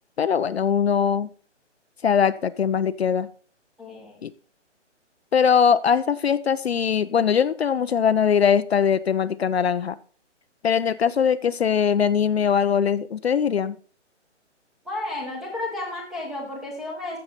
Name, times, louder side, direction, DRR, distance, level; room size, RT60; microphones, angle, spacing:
voice 1, 0.2-1.3 2.0-3.3 4.2-4.3 5.3-10.0 10.6-13.8, left 7 dB, 60° left, 13 dB, 0.6 m, -21 dB
voice 2, 3.8-4.3 14.8-17.2, left 2 dB, ahead, -2 dB, 1.0 m, -32 dB
14.0 x 6.6 x 4.1 m, 0.42 s
hypercardioid pair, 160°, 36 cm